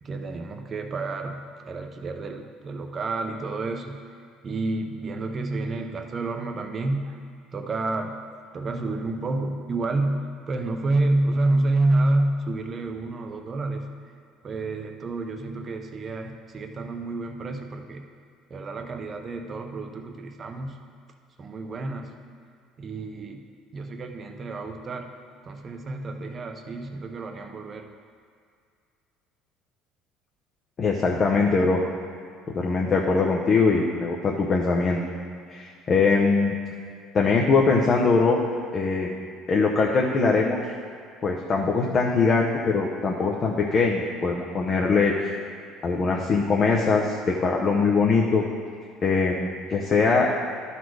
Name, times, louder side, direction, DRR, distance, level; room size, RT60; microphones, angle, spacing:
voice 1, 0.0-4.0 4.4-7.2 7.5-8.2 8.5-13.9 14.4-18.0 18.5-20.8 21.4-22.2 22.8-23.4 23.7-25.1 25.4-27.9, right 2 dB, 30° right, 5 dB, 0.7 m, -29 dB
voice 2, 30.8-31.8 32.5-35.0 35.5-36.5 37.1-38.4 38.7-39.1 39.5-40.6 41.2-45.3 45.8-48.4 49.0-50.3, left 4 dB, 35° left, -1 dB, 0.7 m, -22 dB
12.0 x 4.2 x 4.7 m, 2.2 s
cardioid pair, 135°, 0 cm